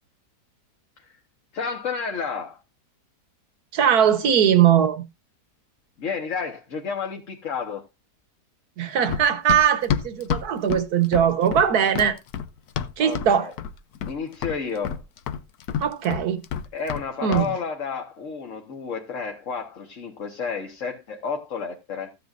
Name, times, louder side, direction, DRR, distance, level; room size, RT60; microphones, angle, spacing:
voice 1, 1.5-2.6 6.0-7.8 13.0-13.5 14.1-15.0 16.7-22.1, left 5 dB, 50° left, 1.6 m, -31 dB
voice 2, 3.7-5.0 8.8-12.2 13.0-13.5 15.8-16.4 17.2-17.5, right 9 dB, 70° right, 1.6 m, -20 dB
Run, 9.1-13.3 13.6-14.2 14.4-17.1 17.3-17.5, left 8 dB, 70° left, 1.2 m, -29 dB
14.5 x 9.4 x 2.5 m
omnidirectional pair, 1.7 m